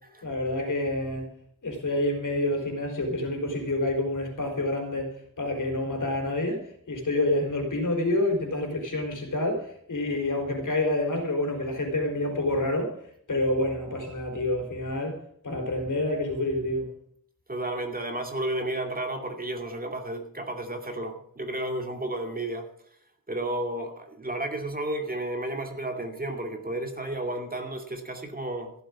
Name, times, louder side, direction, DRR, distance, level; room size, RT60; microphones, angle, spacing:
voice 1, 0.2-1.3 1.6-13.0 13.3-15.2 15.4-16.9, left 1 dB, 70° left, 4.1 m, -28 dB
voice 2, 17.5-22.7 23.3-28.7, right 1 dB, 25° right, 2.5 m, -32 dB
14.5 x 7.9 x 7.5 m
wide cardioid pair, 80°, 33 cm